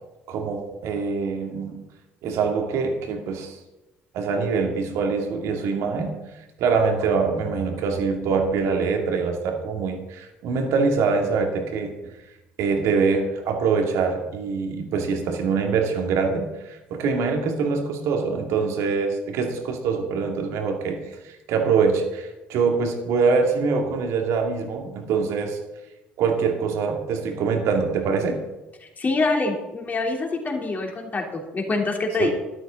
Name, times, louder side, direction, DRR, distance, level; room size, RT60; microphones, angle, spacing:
voice 1, 0.3-1.8 2.2-3.6 4.1-6.2 6.6-12.2 12.6-25.6 26.2-28.5 32.2-32.3, right 5 dB, 60° right, 3 dB, 2.3 m, -24 dB
voice 2, 29.0-32.3, left 3 dB, 30° left, 1 dB, 3.2 m, -25 dB
12.5 x 12.5 x 3.9 m, 1.0 s
hypercardioid pair, 55°, 5 cm